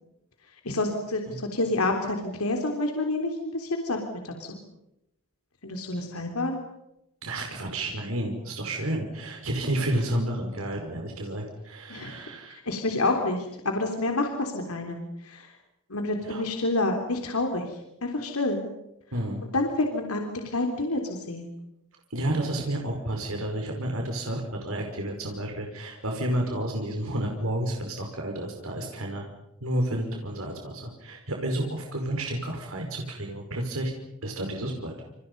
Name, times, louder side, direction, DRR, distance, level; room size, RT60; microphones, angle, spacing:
voice 1, 0.7-4.6 5.6-6.6 11.9-12.2 12.5-15.5 15.9-18.6 19.5-21.5, left 2 dB, 90° left, 3 dB, 3.7 m, -28 dB
voice 2, 7.2-12.6 16.2-16.4 19.1-19.4 22.1-29.3 29.6-33.9 34.2-34.9, right 1 dB, 75° right, 2 dB, 5.3 m, -31 dB
29.0 x 29.0 x 5.5 m, 0.86 s
head